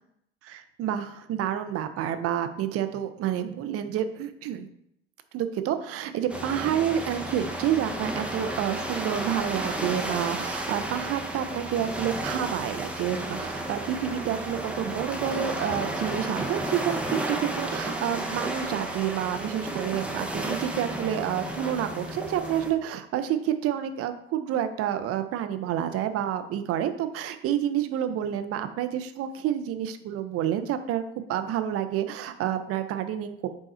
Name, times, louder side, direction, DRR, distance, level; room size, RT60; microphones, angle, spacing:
voice 1, 0.4-4.7 5.3-33.5, right 10 dB, 45° right, 9 dB, 0.6 m, -29 dB
sound 1, 6.3-22.7, right 1 dB, 5° right, 0.8 m, -32 dB
5.4 x 2.3 x 4.2 m, 0.75 s
hypercardioid pair, 75°, 33 cm